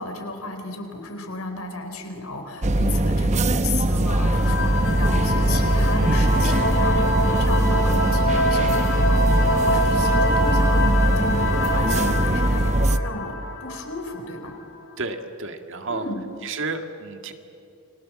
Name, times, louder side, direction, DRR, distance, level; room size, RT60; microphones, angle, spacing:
voice 1, 0.0-14.5 15.9-16.2, left 2 dB, 85° left, 5 dB, 4.2 m, -33 dB
sound 1, 2.6-13.0, right 1 dB, 30° right, 0.8 m, -21 dB
sound 2, 4.2-14.6, left 1 dB, 60° left, 3.5 m, -25 dB
voice 2, 15.0-16.0 16.4-17.3, right 3 dB, 60° right, 6 dB, 1.9 m, -31 dB
29.5 x 23.5 x 7.5 m, 2.7 s
head